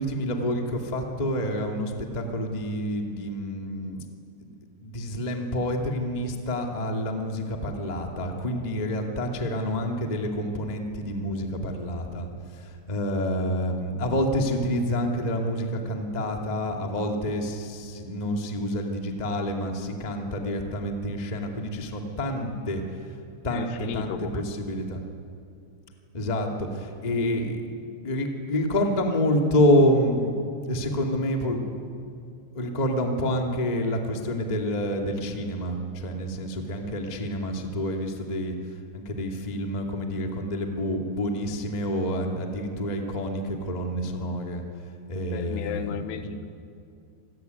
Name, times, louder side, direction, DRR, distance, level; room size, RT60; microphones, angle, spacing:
voice 1, 0.0-4.0 4.4-4.5 4.8-22.8 23.4-25.0 26.1-30.3 30.6-31.7 32.5-38.5 38.9-44.6 45.1-46.3, equal, 15° left, 2 dB, 1.3 m, -28 dB
voice 2, 23.5-24.6 45.3-46.5, left 8 dB, 80° left, 9 dB, 3.1 m, -35 dB
26.5 x 20.5 x 9.6 m, 2.5 s
omnidirectional pair, 5.0 m